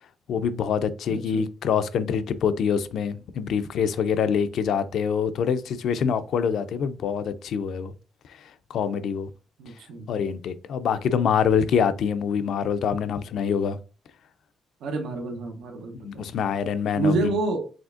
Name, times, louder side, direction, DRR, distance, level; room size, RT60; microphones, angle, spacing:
voice 1, 0.3-7.9 8.4-9.3 10.1-13.8 16.0-17.3, left 7 dB, 70° left, 0.4 m, -25 dB
voice 2, 1.1-1.5 9.6-10.1 14.8-16.3 17.0-17.7, right 3 dB, 80° right, 0.7 m, -28 dB
5.1 x 3.3 x 2.5 m
cardioid pair, 90°, 0 cm